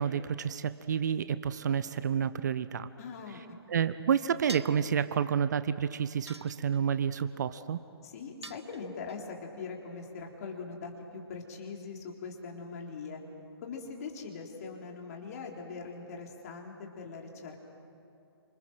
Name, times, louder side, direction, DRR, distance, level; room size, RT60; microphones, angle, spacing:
voice 1, 0.0-2.9 3.7-7.8, right 8 dB, 45° right, 14 dB, 0.7 m, -29 dB
voice 2, 3.0-3.4 8.0-13.2 13.6-17.6, left 4 dB, 40° left, 1 dB, 3.7 m, -42 dB
sound 1, 4.5-4.9 6.3-7.0 8.4-9.2, right 2 dB, 90° right, 1.0 m, -45 dB
28.0 x 26.5 x 6.2 m, 2.6 s
figure-of-eight pair, 130°, 14 cm